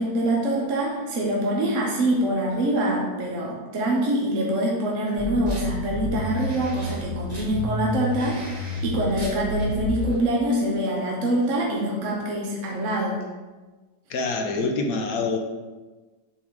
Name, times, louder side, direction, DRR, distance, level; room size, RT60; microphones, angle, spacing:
voice 1, 0.0-13.2, right 1 dB, 50° right, -2 dB, 1.1 m, -25 dB
sound 1, 5.2-10.2, left 1 dB, 25° right, 1.1 m, -30 dB
voice 2, 14.1-15.4, left 3 dB, 60° left, 3 dB, 1.0 m, -25 dB
7.1 x 3.7 x 4.7 m, 1.3 s
omnidirectional pair, 2.0 m